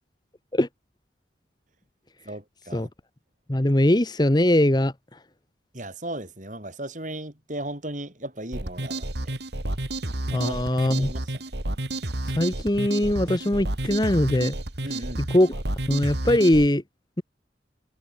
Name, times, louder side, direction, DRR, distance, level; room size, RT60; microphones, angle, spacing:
voice 1, 2.2-2.9 5.7-9.3 10.3-11.4 14.8-15.2, right 1 dB, 40° right, 4.9 m, -36 dB
voice 2, 3.5-4.9 10.3-11.1 12.4-14.5 15.2-15.5 15.9-16.8, left 1 dB, 20° left, 1.0 m, -21 dB
sound 1, 8.5-16.7, right 1 dB, 65° right, 2.8 m, -30 dB
head